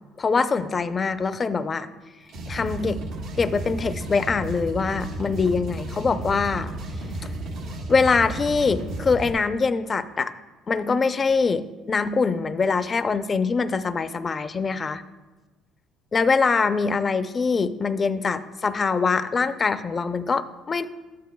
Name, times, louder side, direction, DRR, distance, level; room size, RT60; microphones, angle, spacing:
voice 1, 0.2-1.9 2.5-3.0 3.4-6.7 7.9-10.3 10.7-15.0 16.1-20.9, left 4 dB, 30° left, 11 dB, 0.5 m, -23 dB
sound 1, 2.3-9.3, right 2 dB, 75° right, 1.3 m, -33 dB
13.0 x 10.5 x 2.3 m, 1.2 s
cardioid pair, 105°, 0 cm